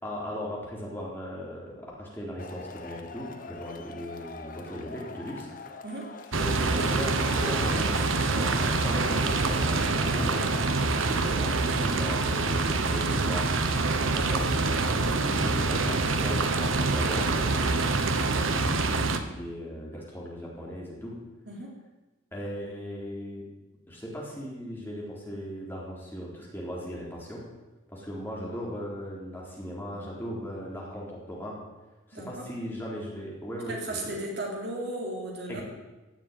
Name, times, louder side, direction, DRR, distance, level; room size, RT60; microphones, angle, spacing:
voice 1, 0.0-5.7 6.3-10.5 11.1-13.5 14.1-17.8 18.3-21.2 22.3-23.5 23.9-27.5 27.9-31.6 32.1-34.1 35.5-35.6, equal, 10° left, -4 dB, 3.8 m, -38 dB
Male speech man speaking / Shout / Clapping, 2.4-10.8, left 3 dB, 40° left, 1.1 m, -43 dB
Mechanisms, 6.2-12.0, left 3 dB, 60° left, 4.0 m, -50 dB
sound 1, 6.3-19.2, right 3 dB, 80° right, 1.2 m, -26 dB
voice 2, 18.1-18.4 21.5-21.7 32.1-32.4 33.7-35.6, right 1 dB, 55° right, -1 dB, 3.7 m, -35 dB
16.5 x 7.4 x 9.3 m, 1.1 s
head